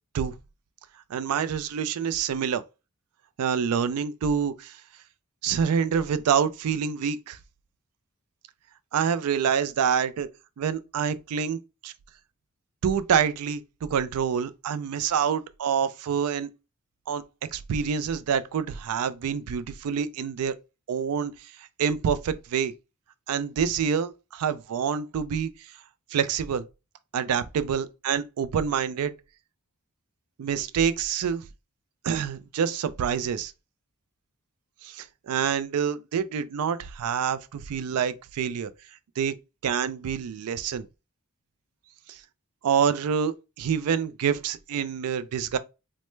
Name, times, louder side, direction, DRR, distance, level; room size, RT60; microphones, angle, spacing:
voice 1, 1.1-2.6 3.4-4.8 5.4-7.4 8.9-10.3 10.6-11.9 12.8-16.5 17.1-17.2 17.5-20.5 20.9-21.3 21.8-22.7 23.3-25.5 26.1-26.6 27.1-29.1 30.4-31.4 32.0-33.5 34.8-38.7 39.2-39.3 39.6-40.9 42.1-42.2 42.6-45.6, right 7 dB, 85° right, 0.3 m, -27 dB
3.1 x 2.1 x 3.1 m
head